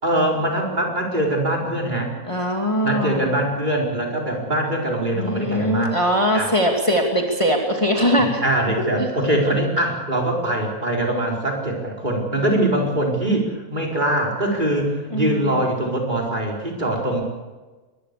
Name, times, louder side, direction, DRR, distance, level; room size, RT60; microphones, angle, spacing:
voice 1, 0.0-2.1 2.8-6.0 6.3-6.5 8.2-17.2, right 1 dB, 30° right, -1 dB, 4.7 m, -22 dB
voice 2, 2.3-3.3 5.1-8.4 9.0-9.1 15.1-15.5, equal, 20° left, 1 dB, 2.7 m, -21 dB
23.5 x 20.5 x 6.8 m, 1.3 s
omnidirectional pair, 1.6 m